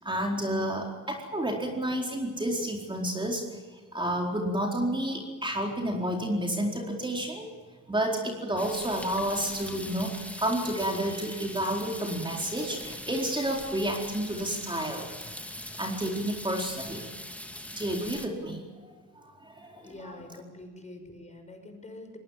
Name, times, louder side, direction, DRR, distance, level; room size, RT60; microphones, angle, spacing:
voice 1, 0.0-3.4 3.7-7.5 7.9-15.1 15.8-17.1 17.7-18.6 19.2-20.1, right 1 dB, 15° right, 0 dB, 4.4 m, -30 dB
sound 1, 8.6-18.3, left 1 dB, 5° left, 2.7 m, -41 dB
voice 2, 19.8-22.2, left 2 dB, 25° left, 5 dB, 5.9 m, -45 dB
23.0 x 20.0 x 7.5 m, 1.5 s
cardioid pair, 90°, 30 cm